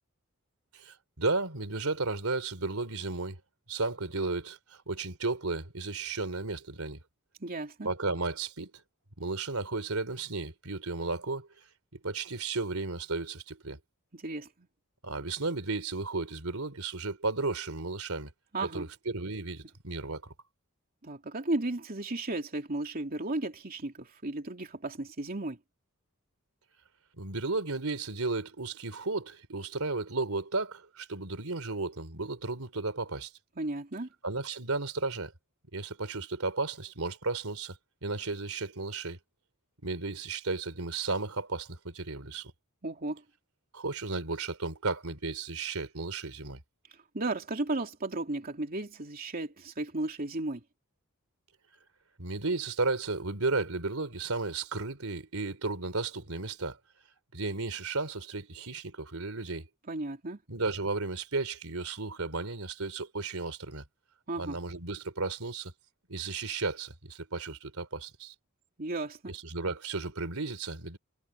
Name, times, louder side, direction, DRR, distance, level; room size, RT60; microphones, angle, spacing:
voice 1, 0.7-3.4 3.7-7.0 7.8-8.7 9.2-11.5 11.9-13.8 15.0-18.3 18.6-20.3 27.2-33.3 34.2-35.3 35.7-39.2 39.8-42.5 43.7-46.6 52.2-56.8 57.3-59.7 60.5-63.8 64.4-65.7 66.1-68.3 69.3-71.0, right 3 dB, 80° right, 3.4 m, -34 dB
voice 2, 7.4-7.9 14.1-14.7 18.5-18.9 21.0-25.6 33.6-34.1 42.8-43.2 47.1-50.6 59.9-60.4 64.3-64.6 68.8-69.4, right 2 dB, 45° right, 2.9 m, -34 dB
head